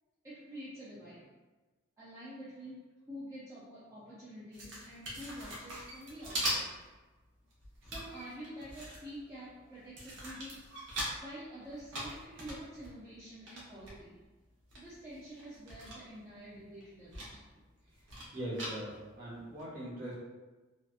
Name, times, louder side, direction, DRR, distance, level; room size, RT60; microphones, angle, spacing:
voice 1, 0.2-1.3 2.0-6.7 7.9-10.6 11.2-14.2 14.8-17.6, equal, 15° right, -11 dB, 0.4 m, -48 dB
sound 1, 4.5-6.9 7.2-9.3 9.8-11.2 11.6-13.9 14.4-14.5 14.7-16.3 16.5-17.4 17.7-19.1 19.6-19.7, right 1 dB, 65° right, 0.7 m, -41 dB
voice 2, 18.3-20.1, right 1 dB, 40° right, -8 dB, 1.1 m, -41 dB
2.7 x 2.2 x 2.3 m, 1.2 s
head